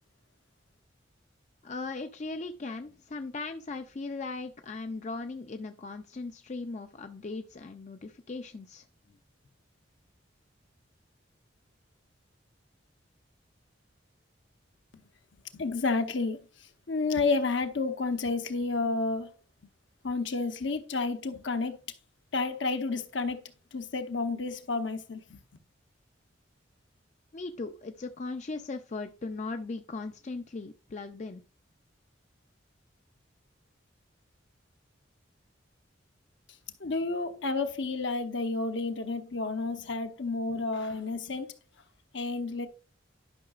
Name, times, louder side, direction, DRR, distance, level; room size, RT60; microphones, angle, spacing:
voice 1, 1.6-9.2 27.3-31.4, left 3 dB, 35° left, 0.4 m, -38 dB
voice 2, 15.5-19.3 20.0-21.8 22.3-23.4 23.7-25.4 36.8-41.5 42.1-42.7, left 3 dB, 70° left, 0.9 m, -30 dB
11.5 x 5.7 x 2.4 m
head